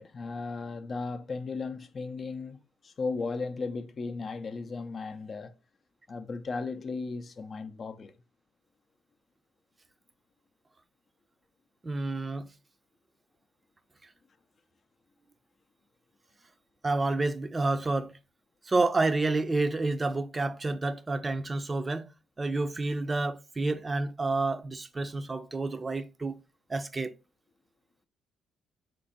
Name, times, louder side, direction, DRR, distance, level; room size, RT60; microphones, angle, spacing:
voice 1, 0.0-2.6 2.8-5.5 6.1-8.1, left 4 dB, 45° left, 0.5 m, -36 dB
voice 2, 11.8-12.5 16.8-18.1 18.7-22.1 22.4-26.4 26.7-27.1, right 3 dB, 25° right, 0.5 m, -29 dB
4.1 x 2.6 x 4.0 m
cardioid pair, 90°, 0 cm